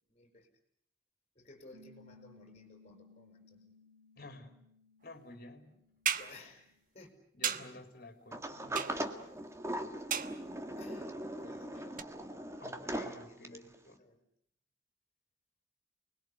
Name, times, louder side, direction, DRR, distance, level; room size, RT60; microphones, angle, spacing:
voice 1, 0.1-0.5 1.4-3.7 6.2-7.1 7.4-7.8 9.8-10.0 10.8-12.1 12.6-12.7 13.3-14.2, left 2 dB, 40° left, 5 dB, 5.5 m, -57 dB
Piano, 1.7-6.8, left 3 dB, 85° right, 3.0 m, -61 dB
voice 2, 4.2-4.6 5.0-5.8 7.3-9.1 12.6-14.0, left 2 dB, 60° left, 6 dB, 3.5 m, -52 dB
sound 1, 6.1-6.4 7.4-7.8 8.8-9.2 10.1-10.6 12.0-12.1, right 8 dB, 50° right, 1.2 m, -35 dB
Sliding door, 8.3-13.7, right 1 dB, 15° right, 1.8 m, -40 dB
29.5 x 21.0 x 8.2 m, 0.71 s
head